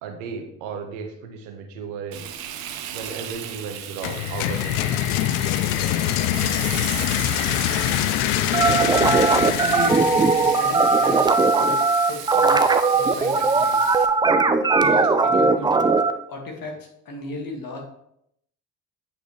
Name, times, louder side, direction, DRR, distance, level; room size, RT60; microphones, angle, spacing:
voice 1, 0.0-2.3 2.9-5.0, right 5 dB, 70° right, 5 dB, 1.2 m, -35 dB
Frying (food), 2.1-14.1, right 10 dB, 50° right, 0.9 m, -36 dB
sound 1, 4.0-11.8, left 13 dB, 60° left, 0.6 m, -25 dB
sound 2, 8.5-16.1, right 4 dB, 10° right, 0.4 m, -19 dB
voice 2, 9.6-10.1 10.4-13.8 14.8-15.8 16.3-17.8, left 2 dB, 45° left, 1 dB, 2.2 m, -35 dB
8.7 x 5.4 x 3.3 m, 0.73 s
figure-of-eight pair, 55°, 46 cm